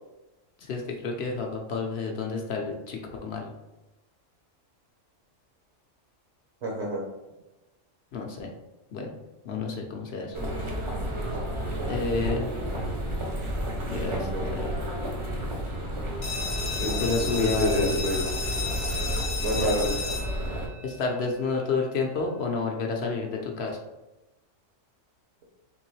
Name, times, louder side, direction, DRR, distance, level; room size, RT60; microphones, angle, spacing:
voice 1, 0.6-3.5 8.1-8.5 8.9-9.1 9.4-10.4 11.9-12.5 13.9-14.7 16.7-17.9 19.6-19.8 20.8-23.8, left 4 dB, 60° left, 1 dB, 0.7 m, -30 dB
voice 2, 6.6-7.0 14.1-14.6 16.7-17.0 17.4-18.6 19.4-19.9, equal, 60° right, -2 dB, 1.1 m, -29 dB
sound 1, 10.3-20.7, right 1 dB, 35° right, 0.5 m, -31 dB
sound 2, 16.2-21.6, left 4 dB, 40° left, 0.3 m, -34 dB
3.6 x 3.0 x 3.1 m, 1.0 s
omnidirectional pair, 1.4 m